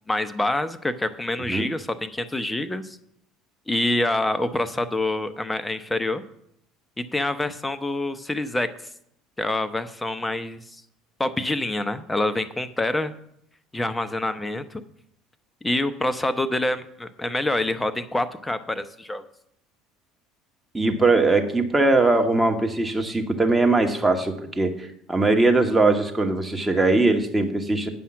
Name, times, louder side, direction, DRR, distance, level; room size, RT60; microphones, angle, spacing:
voice 1, 0.1-3.0 3.7-6.2 7.1-8.7 9.4-10.6 11.2-13.1 13.7-14.8 15.6-19.2, left 2 dB, 10° left, 12 dB, 0.7 m, -26 dB
voice 2, 20.7-27.9, right 2 dB, 10° right, 4 dB, 1.2 m, -21 dB
9.3 x 5.6 x 6.0 m, 0.74 s
figure-of-eight pair, 60°, 0 cm